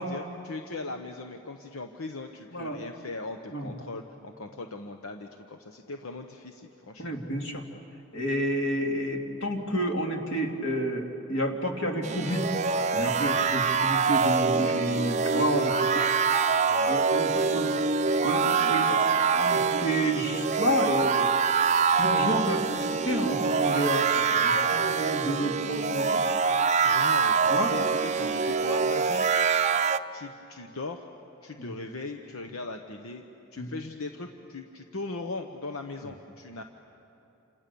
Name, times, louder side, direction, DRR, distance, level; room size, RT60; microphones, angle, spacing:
voice 1, 0.0-7.2 16.6-17.9 18.9-19.2 26.8-29.6 30.1-31.0 31.4-33.2 33.5-36.6, left 3 dB, 85° left, 5 dB, 1.1 m, -39 dB
voice 2, 7.0-7.6 8.1-12.4 12.9-16.1 16.9-17.3 17.5-17.7 18.2-21.3 22.0-26.2 27.5-27.7 31.6-31.7 33.6-33.7, right 1 dB, 60° left, 2 dB, 2.8 m, -30 dB
sound 1, 12.0-30.0, right 5 dB, 35° right, 0.6 m, -25 dB
28.5 x 27.0 x 7.0 m, 3.0 s
head